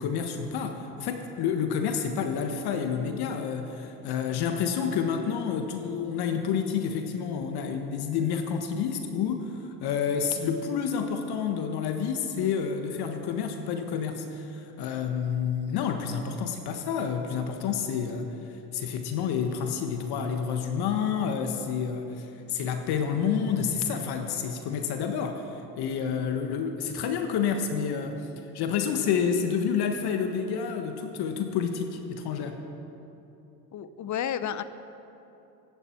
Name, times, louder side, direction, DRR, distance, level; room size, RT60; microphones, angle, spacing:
voice 1, 0.0-18.3 18.7-28.3 28.5-32.6, left 7 dB, 55° left, 6 dB, 1.4 m, -29 dB
voice 2, 33.7-34.6, left 9 dB, 40° left, 13 dB, 0.9 m, -31 dB
24.5 x 11.0 x 4.5 m, 2.9 s
hypercardioid pair, 70°, 45 cm